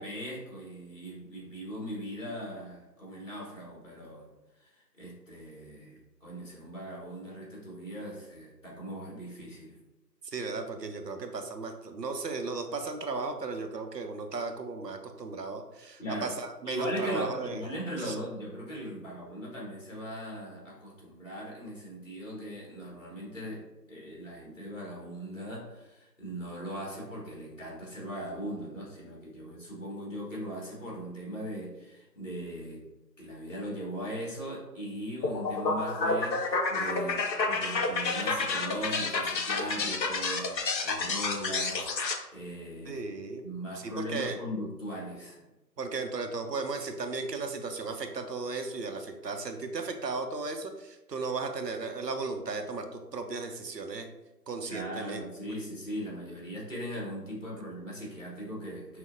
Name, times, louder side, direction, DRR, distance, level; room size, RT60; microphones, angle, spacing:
voice 1, 0.0-4.3 4.6-9.8 16.0-16.3 16.6-32.8 33.2-43.0 43.4-45.4 54.7-59.0, equal, 50° left, -4 dB, 1.4 m, -39 dB
voice 2, 10.3-17.6 18.0-18.2 42.9-43.4 43.8-44.4 45.8-54.1 54.5-55.2, right 3 dB, 75° right, 5 dB, 0.6 m, -35 dB
sound 1, 35.2-42.2, left 3 dB, 85° left, 0.7 m, -30 dB
5.8 x 2.1 x 2.5 m, 1.0 s
figure-of-eight pair, 175°, 50 cm